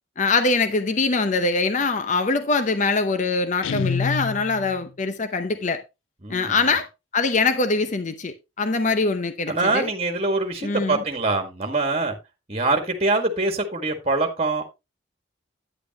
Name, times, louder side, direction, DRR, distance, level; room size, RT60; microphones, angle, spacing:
voice 1, 0.2-5.8 6.3-6.9 7.1-9.9 10.6-11.0, left 3 dB, 40° left, 0.7 m, -23 dB
Guitar, 3.6-4.9, left 5 dB, 85° left, 0.4 m, -27 dB
voice 2, 6.2-6.7 9.5-12.2 12.5-14.6, right 3 dB, 30° right, 1.8 m, -24 dB
9.9 x 8.4 x 2.9 m
head